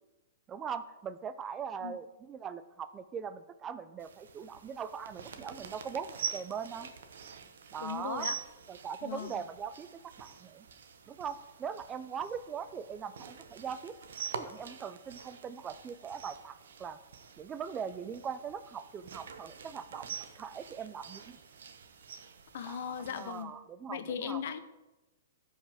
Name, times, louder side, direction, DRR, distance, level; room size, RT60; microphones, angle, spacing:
voice 1, 0.5-6.9 7.7-8.3 8.7-10.6 11.1-13.9 14.3-17.0 17.4-20.1 20.4-21.4 22.6-24.4, right 7 dB, 15° right, 12 dB, 0.3 m, -41 dB
sound 1, 4.0-23.4, right 6 dB, 75° right, 0.9 m, -46 dB
voice 2, 7.8-8.4 9.0-9.4 22.5-23.5 23.9-24.6, left 8 dB, 60° left, 11 dB, 0.7 m, -38 dB
14.5 x 5.5 x 3.5 m, 1.0 s
hypercardioid pair, 155°, 0 cm